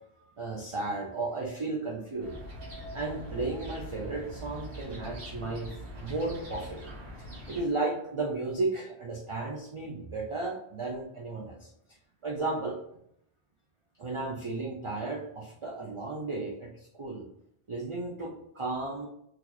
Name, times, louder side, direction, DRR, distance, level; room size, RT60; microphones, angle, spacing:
voice 1, 0.4-2.4 2.9-5.7 6.0-6.9 7.5-11.7 12.2-12.8 14.0-17.3 17.7-19.1, right 3 dB, 45° right, -1 dB, 0.4 m, -34 dB
sound 1, 2.2-7.6, equal, 75° right, 1.4 m, -42 dB
2.9 x 2.4 x 3.8 m, 0.73 s
omnidirectional pair, 1.1 m